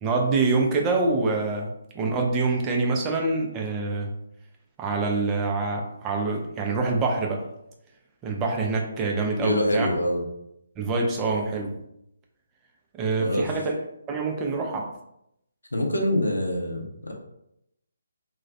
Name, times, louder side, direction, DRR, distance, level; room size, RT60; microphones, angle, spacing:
voice 1, 0.0-1.7 1.9-4.1 4.8-7.5 8.2-9.9 10.8-11.7 12.9-13.7 14.1-14.9, right 3 dB, 20° right, 1 dB, 0.4 m, -25 dB
voice 2, 9.3-10.2 13.2-13.5 15.7-17.1, left 1 dB, 80° left, 1 dB, 0.6 m, -25 dB
2.3 x 2.1 x 2.6 m, 0.79 s
figure-of-eight pair, 140°, 0 cm